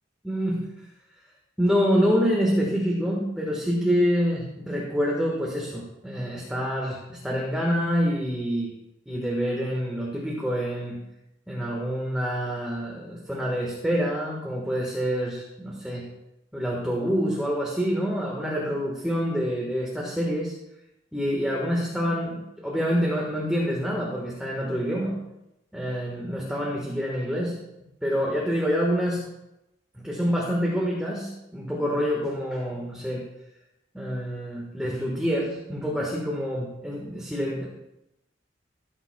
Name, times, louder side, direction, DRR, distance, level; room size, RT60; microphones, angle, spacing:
voice 1, 0.2-0.7 1.6-8.7 9.0-11.0 11.5-16.1 16.5-20.5 21.1-25.2 25.7-27.6 28.0-29.3 30.0-33.2 33.9-37.7, equal, 5° right, -3 dB, 1.5 m, -27 dB
16.0 x 9.0 x 2.3 m, 0.90 s
head